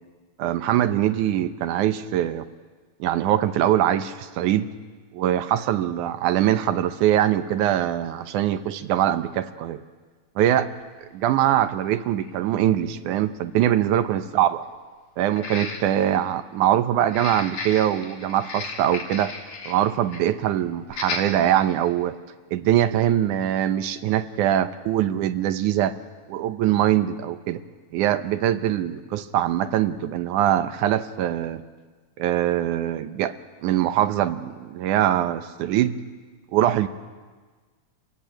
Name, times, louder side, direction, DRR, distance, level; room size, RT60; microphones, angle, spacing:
voice 1, 0.4-2.5 3.0-4.7 5.1-9.8 10.4-10.7 11.1-14.7 15.2-19.3 19.7-22.2 22.5-25.9 26.3-27.6 27.9-31.6 32.2-33.3 33.6-36.0 36.5-36.9, right 11 dB, 85° right, 11 dB, 2.3 m, -22 dB
sound 1, 10.6-10.7 11.7-11.8 12.2-12.3 15.3-16.1 17.0-19.8 20.1-20.3 20.9-21.3 21.8-21.9, left 4 dB, 75° left, 4.1 m, -34 dB
28.5 x 15.5 x 9.1 m, 1.4 s
omnidirectional pair, 3.5 m